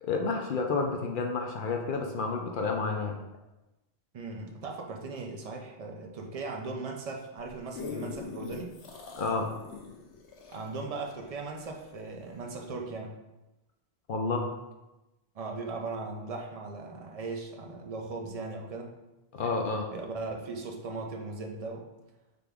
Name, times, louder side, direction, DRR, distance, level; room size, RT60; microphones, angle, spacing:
voice 1, 0.0-3.2 9.2-9.5 14.1-14.5 19.3-19.9, left 4 dB, 60° left, 2 dB, 0.6 m, -30 dB
voice 2, 4.1-8.8 10.5-13.1 15.3-19.0 19.9-21.9, right 3 dB, 45° right, 2 dB, 0.5 m, -38 dB
sound 1, 7.4-12.0 12.6-12.7, left 4 dB, 85° left, 1.0 m, -42 dB
3.9 x 3.4 x 3.4 m, 1.0 s
omnidirectional pair, 1.1 m